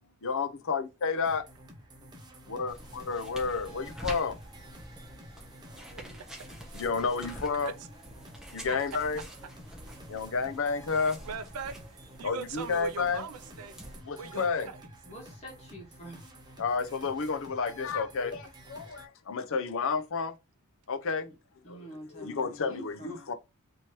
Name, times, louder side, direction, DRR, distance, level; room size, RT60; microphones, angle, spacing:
voice 1, 0.0-1.5 2.5-4.4 5.7-6.0 6.7-7.7 8.5-9.2 10.1-11.2 12.2-13.2 14.1-14.7 16.6-20.4 20.9-21.3 21.6-23.3, left 5 dB, 65° left, 0.6 m, -31 dB
sound 1, 1.2-19.1, right 1 dB, 20° right, 0.7 m, -51 dB
sound 2, 2.7-14.0, equal, ahead, 1.0 m, -47 dB
voice 2, 5.9-6.6 7.6-7.7 8.7-8.8 11.2-13.8 14.2-14.8 17.6-17.7, right 5 dB, 80° right, 0.4 m, -41 dB
voice 3, 15.1-16.6 21.2-21.3 21.6-23.3, equal, 30° left, 1.4 m, -46 dB
4.5 x 3.1 x 3.0 m
head